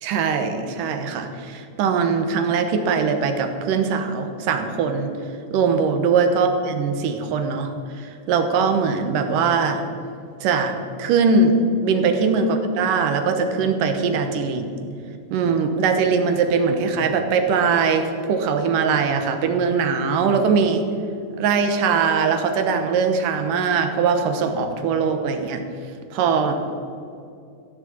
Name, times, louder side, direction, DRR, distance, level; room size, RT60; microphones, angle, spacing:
voice 1, 0.0-5.1 5.5-7.7 8.0-9.8 10.4-11.5 11.8-14.8 15.3-20.8 21.4-25.6 26.1-26.6, right 5 dB, 85° right, 7 dB, 2.7 m, -21 dB
15.0 x 7.4 x 8.6 m, 2.5 s
omnidirectional pair, 3.7 m